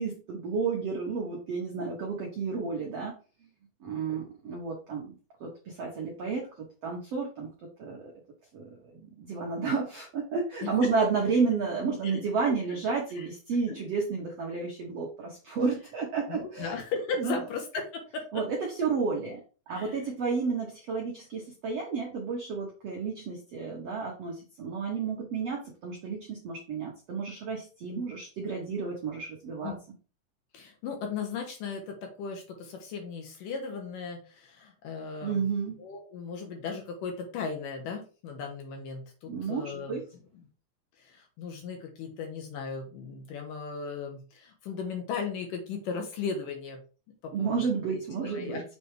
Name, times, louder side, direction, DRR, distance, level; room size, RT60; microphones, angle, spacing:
voice 1, 0.0-3.1 3.8-5.1 5.4-6.5 6.8-7.5 7.8-8.1 8.5-16.8 17.2-17.4 18.3-19.4 19.7-29.7 35.2-35.7 39.3-40.0 47.3-48.6, right 5 dB, 80° right, -1 dB, 1.4 m, -31 dB
voice 2, 16.3-18.4 19.7-20.0 29.6-29.8 30.5-35.4 35.8-40.0 41.0-46.8 47.2-47.6 47.9-48.6, left 5 dB, 70° left, 2 dB, 2.3 m, -37 dB
7.0 x 3.4 x 4.8 m, 0.35 s
omnidirectional pair, 4.9 m